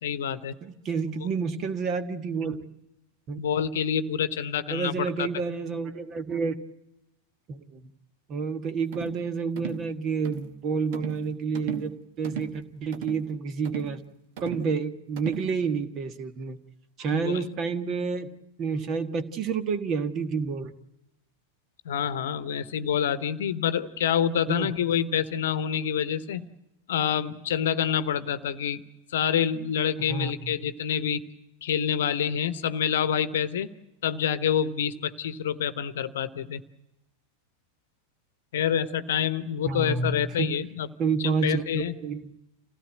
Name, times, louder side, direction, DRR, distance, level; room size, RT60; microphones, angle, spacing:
voice 1, 0.0-0.5 1.0-1.1 3.4-5.3 17.1-17.4 21.8-26.5 26.9-28.8 29.1-31.2 31.6-33.7 34.0-36.6 38.5-40.9 41.2-41.9, left 8 dB, 60° left, 13 dB, 1.0 m, -27 dB
voice 2, 0.6-2.6 3.3-3.4 4.7-6.6 7.5-7.9 8.3-14.0 14.4-16.6 17.0-18.3 18.6-20.7 24.5-24.7 30.1-30.5 39.6-40.5 41.0-42.3, right 5 dB, 35° right, 11 dB, 1.5 m, -29 dB
sound 1, 8.9-9.2 9.6-9.9 10.2-10.5 10.9-11.3 11.5-11.9 12.2-12.6 12.9-13.3 13.6-14.0 14.4-14.7 15.2-15.5, right 7 dB, 50° right, 1.4 m, -37 dB
27.0 x 16.5 x 7.8 m, 0.90 s
figure-of-eight pair, 90°, 0 cm